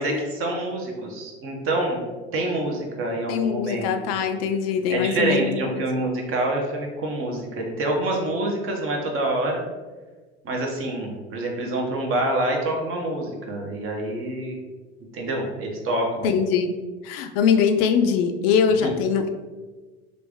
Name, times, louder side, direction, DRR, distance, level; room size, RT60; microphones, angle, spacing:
voice 1, 0.0-2.0 2.3-4.2 4.9-9.6 10.4-14.6 15.1-16.3 18.8-18.9, right 1 dB, 45° right, 1 dB, 0.9 m, -26 dB
voice 2, 3.3-5.8 16.2-16.8 17.0-19.3, left 6 dB, 70° left, 7 dB, 0.5 m, -22 dB
3.1 x 2.6 x 3.5 m, 1.3 s
hypercardioid pair, 80°, 31 cm